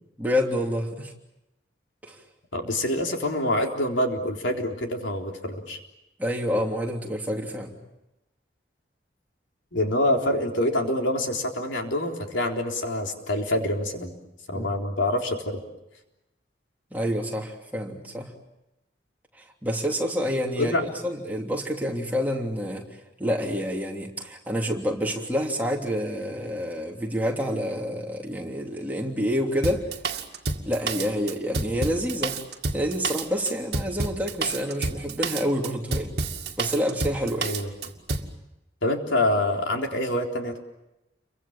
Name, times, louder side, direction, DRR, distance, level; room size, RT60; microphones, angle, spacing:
voice 1, 0.2-1.1 2.0-2.2 6.2-7.7 14.5-14.7 16.9-18.3 19.4-22.8 23.2-29.9 30.6-32.4 32.7-36.1 36.6-37.5, equal, 10° right, -1 dB, 3.1 m, -28 dB
voice 2, 2.5-5.8 9.7-14.1 14.5-15.6 20.6-20.9 37.4-37.7 38.8-40.6, left 1 dB, 85° left, 2 dB, 3.9 m, -26 dB
Drum kit, 29.6-38.3, right 3 dB, 55° right, 2.2 m, -29 dB
30.0 x 24.0 x 7.4 m, 0.92 s
head